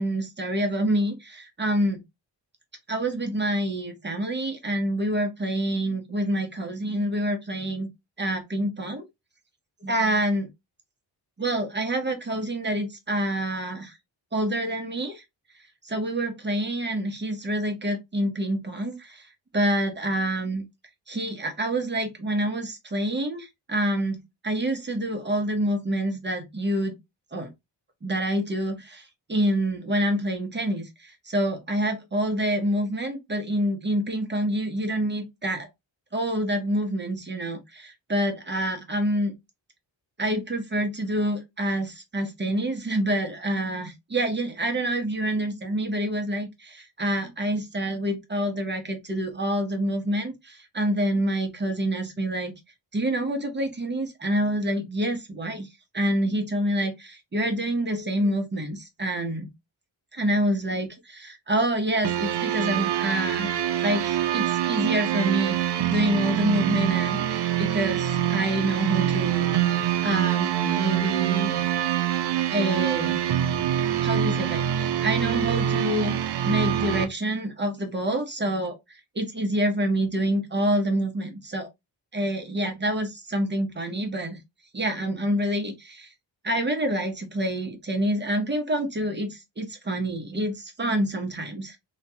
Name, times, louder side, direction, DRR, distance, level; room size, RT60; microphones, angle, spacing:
voice 1, 0.0-2.0 2.9-7.9 8.2-9.1 9.8-10.5 11.4-14.0 14.3-15.2 15.8-19.3 19.5-20.6 21.1-27.0 27.3-27.5 28.0-35.7 36.1-39.3 40.2-52.6 52.9-55.7 55.9-59.5 60.1-69.7 70.0-71.6 72.5-73.2 74.0-78.8 79.2-81.7 82.1-84.4 84.7-86.1 86.4-91.8, right 1 dB, 25° right, 0.7 m, -27 dB
sound 1, 62.0-77.1, right 11 dB, 60° right, 0.5 m, -25 dB
2.9 x 2.3 x 2.7 m
wide cardioid pair, 130°, 46 cm